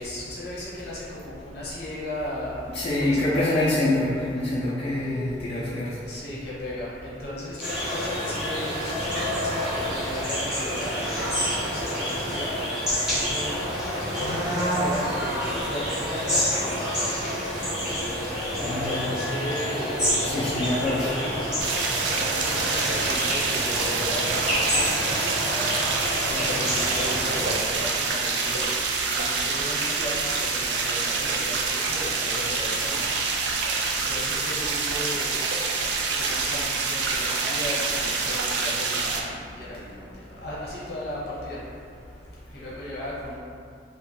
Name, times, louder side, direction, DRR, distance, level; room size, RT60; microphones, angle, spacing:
voice 1, 0.0-3.5 6.0-17.4 18.6-21.5 22.1-25.7 26.2-28.8 29.1-33.1 33.5-35.5 36.2-41.6 42.5-43.4, left 1 dB, 60° left, -7 dB, 0.8 m, -36 dB
voice 2, 2.7-5.9 18.6-18.9 20.2-21.2, left 1 dB, 35° left, -9 dB, 0.3 m, -25 dB
sound 1, 7.6-27.6, equal, 5° right, 0.6 m, -28 dB
sound 2, 21.6-39.2, right 4 dB, 75° right, 0.3 m, -26 dB
2.7 x 2.1 x 3.0 m, 2.4 s
head